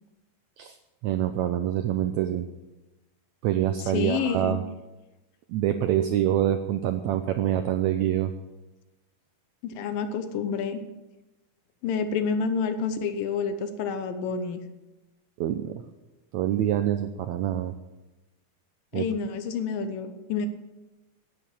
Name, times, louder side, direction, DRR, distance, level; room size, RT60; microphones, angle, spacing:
voice 1, 1.0-2.5 3.4-4.6 5.5-8.3 15.4-15.7 16.3-17.7 18.9-19.1, right 11 dB, 90° right, 9 dB, 1.6 m, -25 dB
voice 2, 3.8-4.6 9.6-10.8 11.8-14.6 18.9-20.5, left 6 dB, 80° left, 9 dB, 2.7 m, -29 dB
11.0 x 9.7 x 8.5 m, 1.1 s
omnidirectional pair, 4.0 m